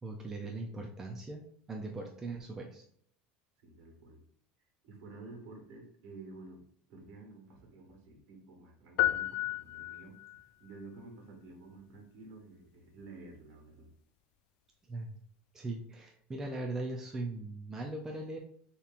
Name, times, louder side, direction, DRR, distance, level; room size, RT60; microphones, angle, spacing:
voice 1, 0.0-2.8 14.9-15.1 15.5-18.4, right 2 dB, 10° right, 1 dB, 0.4 m, -39 dB
voice 2, 3.6-4.2 4.8-6.6 6.9-10.2 10.6-13.9, right 3 dB, 55° right, 2 dB, 1.4 m, -51 dB
sound 1, 9.0-10.4, left 15 dB, 60° left, 0.3 m, -32 dB
6.9 x 2.9 x 2.5 m, 0.63 s
cardioid pair, 180°, 4 cm